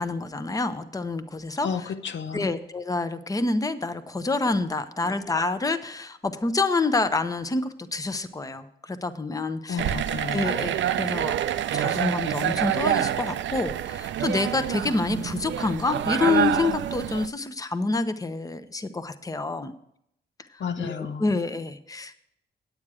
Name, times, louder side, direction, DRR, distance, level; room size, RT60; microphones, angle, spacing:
voice 1, 0.0-1.7 2.3-9.8 10.3-11.4 11.7-19.7 20.8-22.2, left 3 dB, 20° left, 10 dB, 0.7 m, -27 dB
voice 2, 1.6-2.5 5.0-5.2 9.7-10.5 20.6-21.3, left 6 dB, 80° left, 8 dB, 0.7 m, -32 dB
sound 1, 9.8-17.3, right 10 dB, 85° right, 0.4 m, -27 dB
9.2 x 8.8 x 4.8 m, 0.73 s
cardioid pair, 95°, 19 cm